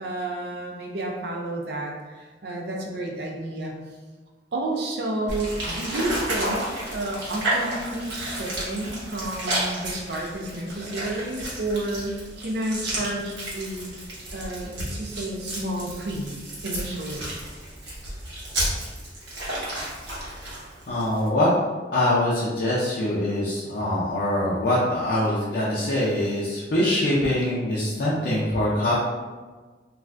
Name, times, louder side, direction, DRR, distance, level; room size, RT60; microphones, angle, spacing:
voice 1, 0.0-3.7 4.5-14.0 14.3-16.3 16.6-17.3, right 1 dB, 65° right, 0 dB, 0.5 m, -31 dB
sound 1, 5.3-21.3, right 1 dB, 85° right, 1.0 m, -32 dB
voice 2, 20.9-21.5 21.9-28.9, left 1 dB, 60° left, -7 dB, 0.5 m, -23 dB
2.5 x 2.4 x 3.2 m, 1.3 s
head